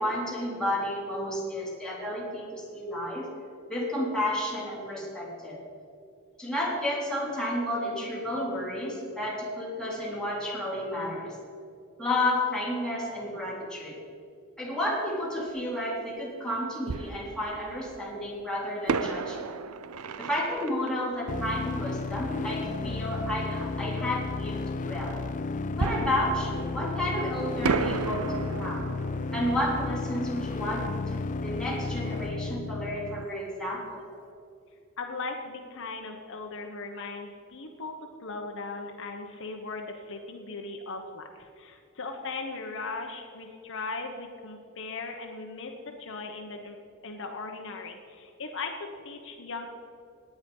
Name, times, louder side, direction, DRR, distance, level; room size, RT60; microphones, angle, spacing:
voice 1, 0.0-3.3 3.7-5.6 6.4-11.4 12.0-14.0 14.6-19.6 20.2-25.2 25.8-28.9 29.3-34.1, left 1 dB, 5° left, -5 dB, 3.8 m, -31 dB
Fireworks, 15.6-15.7 16.9-18.0 18.9-22.3 25.8-27.2 27.6-32.2 32.4-32.5 33.1-33.3, right 5 dB, 90° right, 0.6 m, -34 dB
sound 1, 21.3-33.3, left 3 dB, 35° left, 0.4 m, -33 dB
voice 2, 35.0-37.9 38.2-46.8 47.0-49.7, left 3 dB, 65° left, 3 dB, 1.2 m, -38 dB
18.5 x 9.6 x 5.5 m, 2.5 s
head